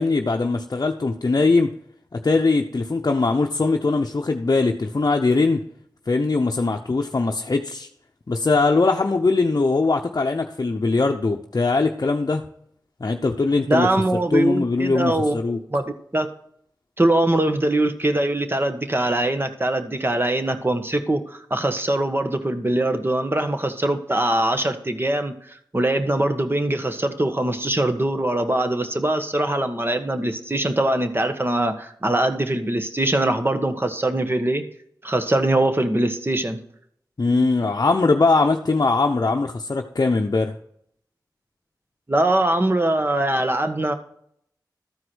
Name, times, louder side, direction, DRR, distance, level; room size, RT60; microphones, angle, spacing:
voice 1, 0.0-1.7 2.1-5.6 6.1-7.9 8.3-12.4 13.0-13.9 14.3-15.6 37.2-40.5, left 3 dB, 50° left, 2 dB, 0.8 m, -21 dB
voice 2, 13.7-15.8 16.1-16.3 17.0-34.6 35.0-36.6 42.1-43.9, right 1 dB, 30° right, 7 dB, 1.4 m, -22 dB
13.0 x 4.8 x 6.2 m, 0.68 s
cardioid pair, 40°, 8 cm